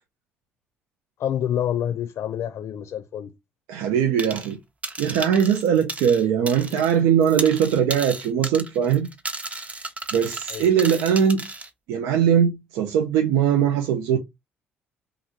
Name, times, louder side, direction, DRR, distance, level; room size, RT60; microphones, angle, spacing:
voice 1, 1.2-3.3 10.5-10.7, left 10 dB, 55° left, 0.5 m, -27 dB
voice 2, 3.7-4.6 5.0-9.1 10.1-11.4 11.9-14.2, right 8 dB, 70° right, 0.4 m, -20 dB
sound 1, 4.2-4.6 4.8-7.0 7.2-11.7, right 2 dB, 25° right, 0.7 m, -34 dB
2.9 x 2.5 x 2.8 m
hypercardioid pair, 50°, 6 cm